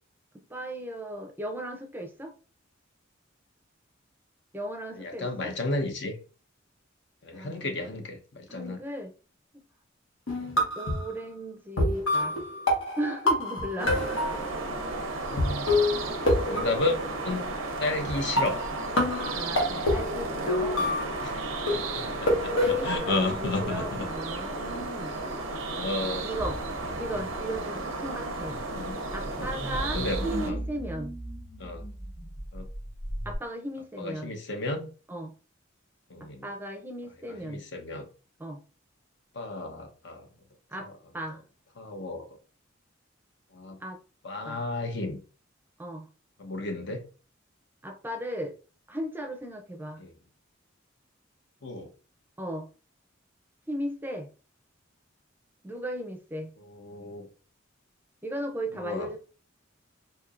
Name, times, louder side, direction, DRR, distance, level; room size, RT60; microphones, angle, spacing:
voice 1, 0.5-2.3 4.5-5.5 7.3-7.7 8.5-9.2 9.5-9.6 10.6-12.4 13.0-15.3 19.3-21.0 22.6-25.2 26.2-26.6 27.0-28.6 29.1-31.1 33.3-34.3 35.1-35.3 36.2-37.6 38.4-38.6 40.7-41.4 43.8-44.0 44.4-44.6 45.8-46.1 47.8-48.5 48.9-50.0 52.4-52.7 53.7-54.3 55.6-56.5 58.2-59.2, right 1 dB, 10° right, 0.5 m, -36 dB
voice 2, 5.0-6.1 7.2-8.8 10.3-10.5 15.3-15.7 16.5-17.0 17.2-18.6 21.2-21.4 21.7-22.3 22.6-24.1 25.7-26.3 28.7-29.0 29.7-30.6 31.6-31.8 32.5-32.7 34.0-34.9 36.1-36.4 37.4-38.1 39.3-40.3 41.8-42.3 43.5-43.8 44.2-45.2 46.4-47.0 50.0-50.1 51.6-51.9 56.8-57.3 58.8-59.2, left 2 dB, 60° left, 0.8 m, -33 dB
sound 1, 10.3-11.1 11.8-14.7 15.4-15.5 15.7-17.4 18.1-18.2 18.4-21.3 21.7-23.0, left 1 dB, 85° left, 1.3 m, -27 dB
sound 2, 13.8-30.5, right 2 dB, 90° right, 0.7 m, -34 dB
sound 3, 26.4-33.4, equal, 35° left, 1.7 m, -38 dB
4.5 x 2.8 x 2.4 m
head